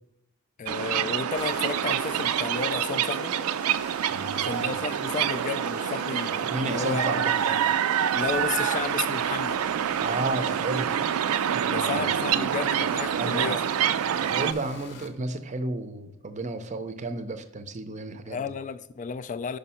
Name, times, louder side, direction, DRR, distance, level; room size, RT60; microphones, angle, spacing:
voice 1, 0.6-3.4 4.0-7.3 8.1-9.6 11.7-13.6 18.3-19.6, left 6 dB, 35° left, 0.3 m, -33 dB
sound 1, 0.7-14.5, right 9 dB, 85° right, 0.4 m, -26 dB
sound 2, 1.4-15.1, left 3 dB, 55° left, 0.9 m, -44 dB
voice 2, 4.1-4.8 6.4-7.6 10.0-10.9 11.5-12.0 13.1-13.6 14.2-18.4, right 2 dB, 35° right, 0.6 m, -33 dB
5.2 x 5.2 x 5.6 m
head